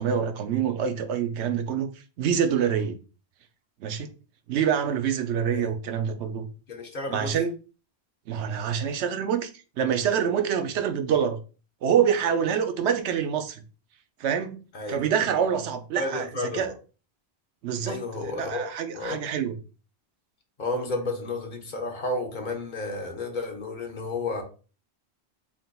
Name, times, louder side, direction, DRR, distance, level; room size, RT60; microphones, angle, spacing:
voice 1, 0.0-1.9 2.2-3.0 3.8-4.1 4.5-6.5 7.1-7.5 8.3-9.5 9.8-11.4 11.8-13.6 14.2-14.6 14.9-16.3 16.5-16.7 17.6-19.6, right 8 dB, 85° right, 0.9 m, -26 dB
voice 2, 6.7-7.3 14.7-15.0 16.0-16.7 17.9-18.7 18.9-19.2 20.6-24.4, left 2 dB, 50° left, 1.0 m, -32 dB
3.9 x 3.7 x 2.3 m
omnidirectional pair, 1.1 m